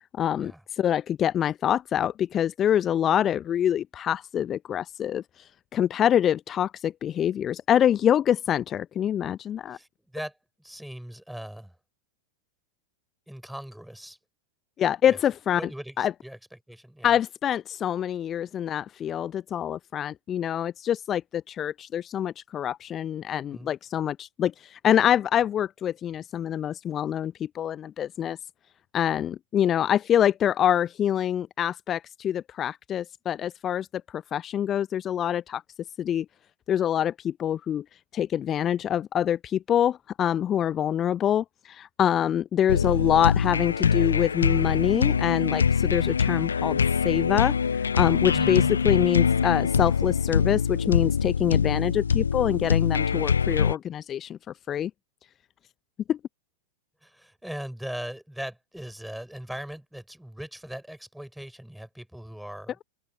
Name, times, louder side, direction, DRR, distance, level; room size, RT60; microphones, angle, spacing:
voice 1, 0.2-9.8 14.8-15.6 16.0-16.1 17.0-28.4 28.9-35.6 36.0-36.3 36.7-37.8 38.1-54.4 54.7-54.9 56.1-56.2, left 10 dB, 25° left, 0.6 m, -25 dB
voice 2, 9.7-11.8 13.3-14.2 15.1-15.2 15.6-16.4 16.7-17.2 23.4-23.7 48.3-48.8 57.0-62.8, equal, ahead, 5.8 m, -39 dB
sound 1, 42.7-53.7, left 6 dB, 70° left, 0.3 m, -24 dB
open air
figure-of-eight pair, 90°, 0 cm